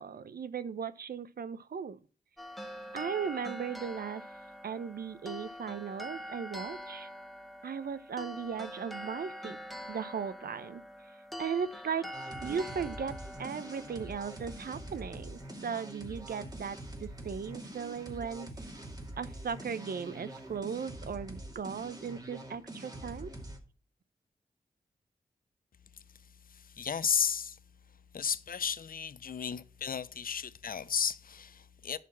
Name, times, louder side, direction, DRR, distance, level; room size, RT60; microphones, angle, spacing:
voice 1, 0.0-2.0 2.9-4.2 4.6-7.1 7.6-9.6 9.9-10.8 11.4-12.1 12.4-13.1 13.4-18.5 19.2-23.3, right 6 dB, 75° right, 0.7 m, -37 dB
sound 1, 2.4-15.6, equal, ahead, 1.1 m, -45 dB
sound 2, 12.1-23.6, right 1 dB, 25° right, 2.4 m, -45 dB
voice 2, 26.5-27.6 28.1-32.0, left 7 dB, 65° left, 0.7 m, -33 dB
11.0 x 4.2 x 7.4 m
cardioid pair, 55°, 16 cm